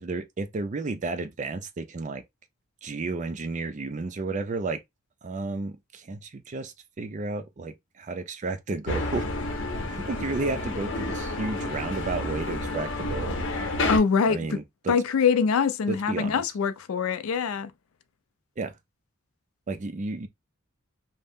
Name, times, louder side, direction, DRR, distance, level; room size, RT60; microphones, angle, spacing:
voice 1, 0.0-2.2 2.8-4.8 5.2-9.3 9.9-13.4 14.3-15.0 15.9-16.4 18.6-18.7 19.7-20.3, right 3 dB, 35° right, 0.4 m, -32 dB
sound 1, 8.9-14.0, left 2 dB, 60° left, 0.8 m, -30 dB
voice 2, 13.9-14.6 14.9-17.7, left 6 dB, 80° left, 0.4 m, -24 dB
2.7 x 2.0 x 3.5 m
head